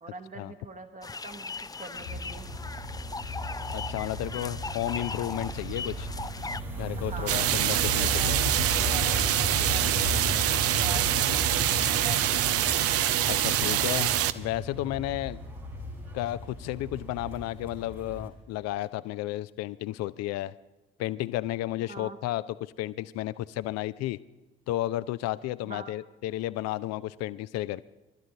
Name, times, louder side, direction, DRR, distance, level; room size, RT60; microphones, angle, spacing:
voice 1, 0.0-2.5 7.0-8.4 8.8-12.4 21.9-22.2 25.6-25.9, right 2 dB, 30° right, 7 dB, 1.3 m, -43 dB
sound 1, 1.0-6.6, left 4 dB, 15° left, 0.5 m, -38 dB
sound 2, 1.9-18.3, equal, 90° right, 2.4 m, -35 dB
voice 2, 3.7-6.1 6.8-8.4 13.3-15.4 16.1-20.5 21.0-24.2 24.7-27.8, left 15 dB, 60° left, 16 dB, 0.6 m, -32 dB
sound 3, 7.3-14.3, right 12 dB, 55° right, 0.6 m, -25 dB
28.5 x 12.5 x 3.9 m, 1.1 s
figure-of-eight pair, 45°, 29 cm